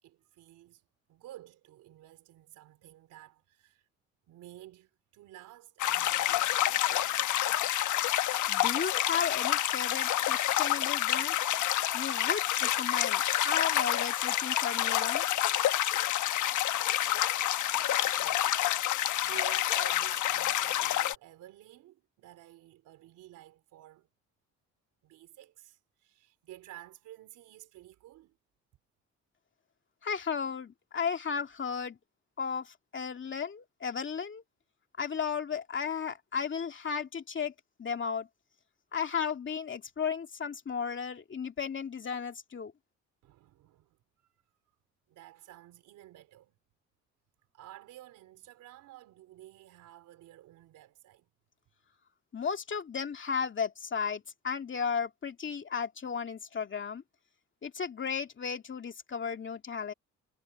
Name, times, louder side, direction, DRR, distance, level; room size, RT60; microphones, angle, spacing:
voice 1, 0.0-3.9 4.3-7.2 17.8-18.6 18.9-24.1 25.0-28.4 43.2-44.3 45.1-46.5 47.5-51.3, right 14 dB, 90° right, 3.7 m, -52 dB
sound 1, 5.8-21.1, left 13 dB, 75° left, 1.1 m, -28 dB
voice 2, 8.5-11.4 11.9-15.2 30.0-32.0 32.4-34.4 35.0-37.5 37.8-38.3 38.9-42.7 52.3-57.0 57.6-59.9, left 6 dB, 40° left, 2.5 m, -34 dB
cardioid pair, 90°, 30 cm